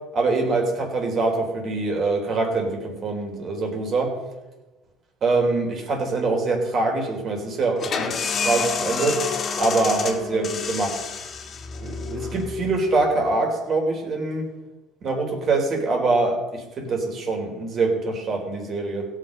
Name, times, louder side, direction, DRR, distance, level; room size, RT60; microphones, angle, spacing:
voice 1, 0.1-4.1 5.2-8.1 8.5-9.2 9.6-11.0 11.8-14.5 15.0-19.1, right 3 dB, 45° right, 2 dB, 3.9 m, -24 dB
sound 1, 7.8-13.2, left 5 dB, 45° left, 1.6 m, -29 dB
17.0 x 6.4 x 5.4 m, 1.1 s
supercardioid pair, 80°, 0 cm